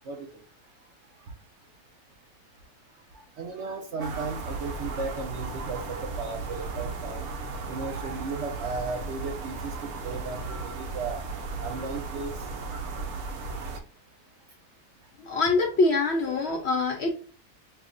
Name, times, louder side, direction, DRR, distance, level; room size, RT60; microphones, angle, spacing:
voice 1, 0.0-0.4 1.2-1.3 2.9-11.2 11.6-12.5, right 4 dB, 60° right, 0.8 m, -36 dB
sound 1, 4.0-13.8, right 4 dB, 80° right, 1.2 m, -35 dB
voice 2, 15.2-17.1, left 3 dB, 60° left, 0.7 m, -24 dB
5.6 x 2.1 x 2.4 m
omnidirectional pair, 1.6 m